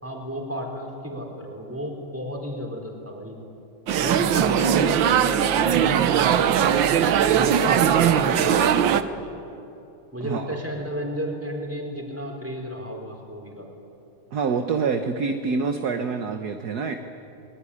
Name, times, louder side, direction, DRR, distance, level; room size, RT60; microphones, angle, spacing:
voice 1, 0.0-3.4 3.9-6.7 7.2-9.3 10.1-13.7, equal, 5° right, 0 dB, 4.3 m, -33 dB
sound 1, 3.9-9.0, right 9 dB, 70° right, 1.6 m, -20 dB
voice 2, 10.2-10.6 14.3-16.9, right 5 dB, 55° right, 6 dB, 1.5 m, -26 dB
23.0 x 21.5 x 10.0 m, 2.7 s
omnidirectional pair, 2.3 m